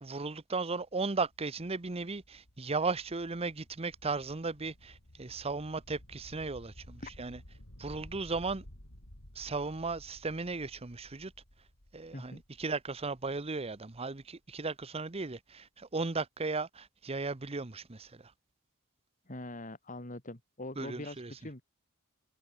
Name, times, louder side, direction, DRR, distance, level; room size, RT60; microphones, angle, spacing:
voice 1, 0.0-7.4 7.8-8.6 9.3-11.3 11.9-18.3 20.8-21.4, right 3 dB, 25° right, 0.9 m, -36 dB
sound 1, 0.8-14.6, equal, 80° left, 5.0 m, -55 dB
voice 2, 12.1-12.4 19.3-21.6, left 2 dB, 35° left, 3.0 m, -43 dB
head